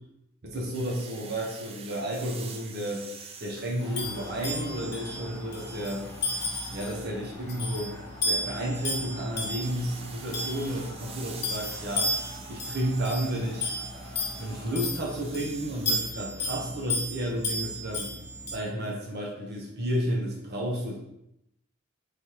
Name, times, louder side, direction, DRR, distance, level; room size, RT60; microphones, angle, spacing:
voice 1, 0.4-3.1 3.4-6.1 6.7-8.0 8.2-12.2 12.5-13.7 14.4-18.1 18.5-21.0, right 1 dB, 50° right, -3 dB, 0.8 m, -32 dB
sound 1, 0.7-5.0 5.4-7.1 9.6-16.0, right 5 dB, 30° right, 0.4 m, -47 dB
sound 2, 3.8-14.8, equal, 15° left, 0.8 m, -48 dB
sound 3, 3.9-18.5, left 1 dB, 50° left, 0.8 m, -34 dB
4.1 x 3.3 x 2.9 m, 0.83 s
head